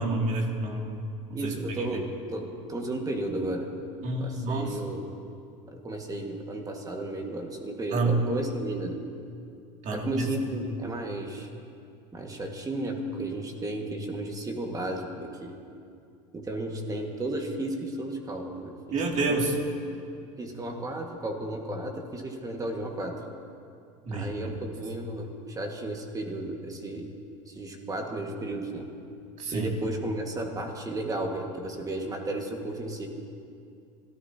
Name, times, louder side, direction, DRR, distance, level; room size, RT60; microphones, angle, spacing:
voice 1, 0.0-1.9 4.0-4.8 7.9-8.2 9.8-10.2 18.9-19.6 24.0-24.3 29.4-29.7, right 2 dB, 50° right, 0 dB, 2.6 m, -29 dB
voice 2, 1.3-3.7 4.2-5.0 5.7-9.0 9.9-11.5 12.1-15.5 16.3-19.5 20.4-23.1 24.1-27.1 27.5-28.9 29.5-33.1, right 1 dB, 20° right, 2 dB, 1.9 m, -33 dB
25.5 x 14.0 x 2.9 m, 2.4 s
supercardioid pair, 100°, 17 cm